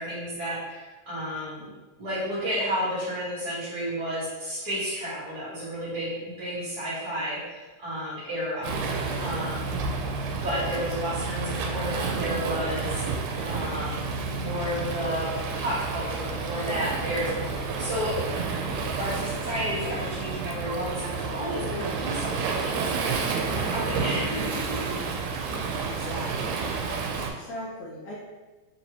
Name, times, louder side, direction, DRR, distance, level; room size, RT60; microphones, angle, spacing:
voice 1, 0.0-1.7 2.0-8.9 9.2-9.8 10.3-13.0 13.4-14.0 14.3-18.2 19.0-25.0, equal, 55° right, -10 dB, 1.1 m, -32 dB
Waves surf, 8.6-27.3, right 4 dB, 85° right, 2.0 m, -30 dB
voice 2, 25.8-26.6 26.9-28.1, equal, 70° left, -5 dB, 1.9 m, -39 dB
5.1 x 2.9 x 2.8 m, 1.2 s
omnidirectional pair, 3.7 m